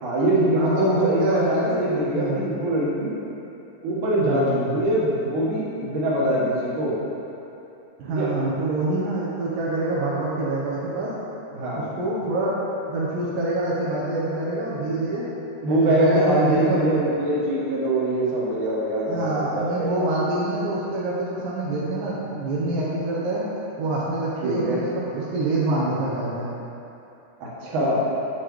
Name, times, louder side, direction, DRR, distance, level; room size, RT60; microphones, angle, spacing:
voice 1, 0.0-3.1 3.8-6.9 8.1-8.3 11.5-11.8 15.6-20.0 24.4-24.8 27.6-28.0, right 1 dB, 70° right, -7 dB, 2.8 m, -23 dB
voice 2, 0.5-1.8 2.1-2.4 4.2-4.7 8.0-11.1 11.7-12.6 12.9-15.3 15.7-17.1 19.0-23.4 23.8-26.5, right 2 dB, 85° right, -7 dB, 2.6 m, -26 dB
9.1 x 6.3 x 3.1 m, 2.9 s
omnidirectional pair, 3.9 m